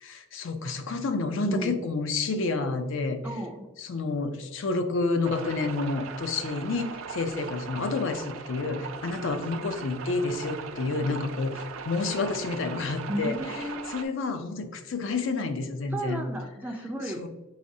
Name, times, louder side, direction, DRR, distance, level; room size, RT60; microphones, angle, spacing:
voice 1, 0.0-3.2 3.9-13.4 13.9-16.2 17.2-17.3, left 3 dB, 65° left, 8 dB, 0.4 m, -29 dB
voice 2, 1.5-1.8 3.2-3.7 13.1-13.8 15.9-17.3, right 1 dB, 10° right, 2 dB, 0.3 m, -33 dB
sound 1, 5.2-14.0, right 6 dB, 85° right, 0.4 m, -39 dB
4.8 x 3.1 x 2.6 m, 1.2 s
head